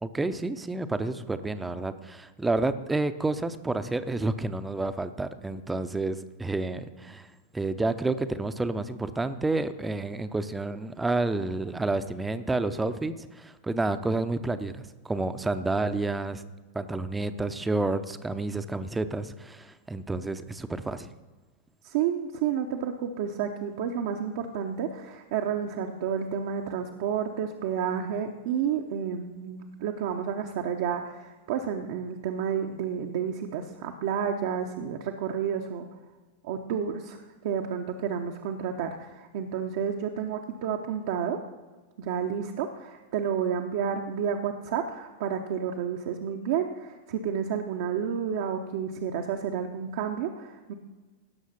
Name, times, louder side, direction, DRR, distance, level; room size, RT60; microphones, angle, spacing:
voice 1, 0.0-7.3 7.5-16.4 16.7-21.1, right 2 dB, 10° right, 11 dB, 0.7 m, -30 dB
voice 2, 21.8-35.9 36.4-37.2 37.4-41.4 42.0-50.7, right 8 dB, 55° right, 2 dB, 0.8 m, -30 dB
17.5 x 6.5 x 5.6 m, 1.3 s
figure-of-eight pair, 90°, 0 cm